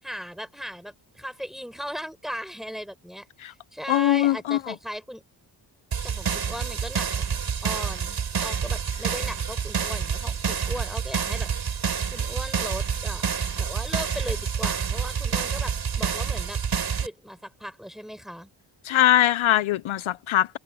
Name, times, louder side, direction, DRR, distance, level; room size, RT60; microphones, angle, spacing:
voice 1, 0.0-5.2 6.0-11.5 12.1-13.2 13.6-16.6 17.0-18.5, equal, ahead, 7.4 m, -37 dB
voice 2, 3.9-4.7 18.8-20.6, left 13 dB, 80° left, 0.8 m, -21 dB
sound 1, 5.9-17.1, right 6 dB, 50° right, 6.6 m, -28 dB
wide cardioid pair, 175°, 48 cm